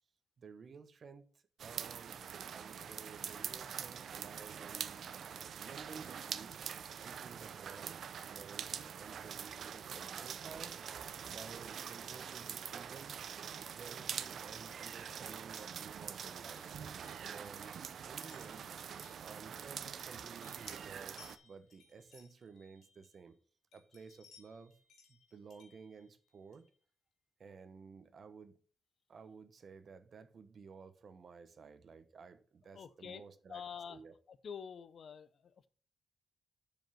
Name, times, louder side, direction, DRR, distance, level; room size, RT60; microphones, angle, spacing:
voice 1, 0.4-1.3 1.6-2.2 2.5-5.0 5.5-6.5 7.0-10.8 11.3-13.2 13.6-16.7 17.3-18.7 19.2-23.4 23.7-24.7 25.1-26.7 27.4-28.6 29.1-33.6 33.9-34.1, right 5 dB, 55° right, 0.9 m, -54 dB
sound 1, 1.6-21.4, right 8 dB, 75° right, 0.6 m, -44 dB
sound 2, 16.4-20.1 20.4-23.3 23.7-26.8, left 4 dB, 85° left, 2.7 m, -64 dB
voice 2, 32.7-35.7, left 7 dB, 65° left, 0.7 m, -48 dB
7.5 x 5.3 x 5.7 m
cardioid pair, 105°, 0 cm